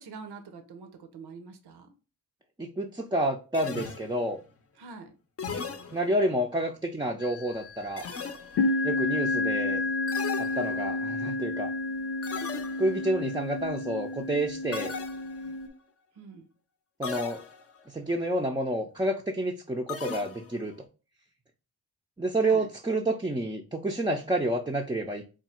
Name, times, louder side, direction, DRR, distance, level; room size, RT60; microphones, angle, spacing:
voice 1, 0.0-1.9 4.8-5.2 16.2-16.5 22.4-22.7, right 4 dB, 85° right, 0.7 m, -45 dB
voice 2, 2.6-4.4 5.9-8.1 8.8-9.8 10.4-11.7 12.8-14.9 17.0-17.4 17.9-20.7 22.2-25.2, right 1 dB, 10° right, 0.4 m, -29 dB
sound 1, 3.5-4.4 5.4-6.4 8.0-8.8 10.1-11.1 12.2-13.1 14.7-15.7 17.0-17.8 19.9-20.8, left 5 dB, 40° left, 0.6 m, -38 dB
sound 2, 7.2-7.7 8.5-15.7, left 2 dB, 80° left, 0.6 m, -30 dB
3.6 x 2.3 x 4.2 m
cardioid pair, 55°, 38 cm